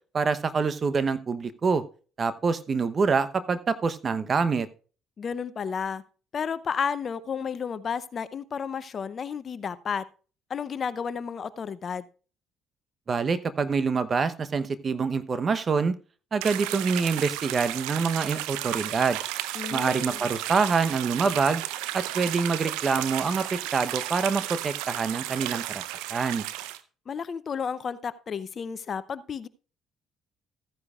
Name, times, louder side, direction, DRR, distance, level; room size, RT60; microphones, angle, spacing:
voice 1, 0.1-1.8 2.2-4.7 13.1-15.9 16.3-19.2 19.7-21.6 21.9-25.8 26.1-26.4, right 5 dB, 40° right, 13 dB, 0.9 m, -26 dB
voice 2, 5.2-6.0 6.3-10.1 10.5-12.0 19.5-20.3 27.1-29.5, left 6 dB, 45° left, 16 dB, 0.7 m, -32 dB
sound 1, 16.4-26.8, right 14 dB, 80° right, 0.6 m, -33 dB
15.0 x 9.6 x 2.4 m, 0.37 s
hypercardioid pair, 60°, 0 cm